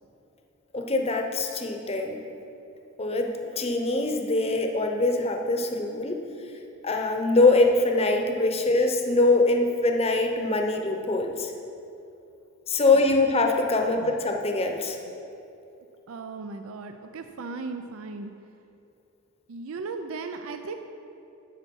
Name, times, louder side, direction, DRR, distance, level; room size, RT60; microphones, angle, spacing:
voice 1, 0.7-2.2 3.0-6.2 6.8-11.5 12.7-15.0, left 2 dB, 30° left, 4 dB, 0.8 m, -23 dB
voice 2, 13.8-14.2 16.1-18.3 19.5-20.7, right 4 dB, 80° right, 7 dB, 0.5 m, -37 dB
10.5 x 6.8 x 5.3 m, 2.8 s
head